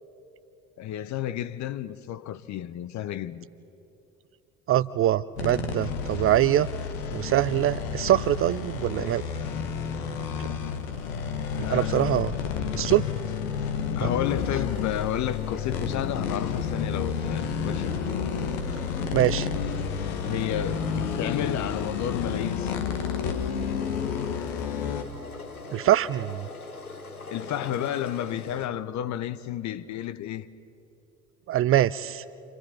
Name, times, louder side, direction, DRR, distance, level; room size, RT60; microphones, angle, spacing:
voice 1, 0.8-3.5 11.5-12.0 12.6-12.8 14.0-18.0 20.2-23.0 27.3-30.5, left 11 dB, 40° left, 0.9 m, -31 dB
voice 2, 4.7-6.7 7.1-9.2 10.4-10.5 11.7-12.3 12.7-13.0 14.0-14.1 19.1-19.5 25.7-26.4 31.5-32.2, right 13 dB, 35° right, 0.4 m, -23 dB
sound 1, 5.4-25.0, left 6 dB, 65° left, 1.5 m, -30 dB
sound 2, 14.2-28.7, left 3 dB, 90° left, 1.0 m, -42 dB
29.0 x 26.0 x 4.4 m
figure-of-eight pair, 55°, 43 cm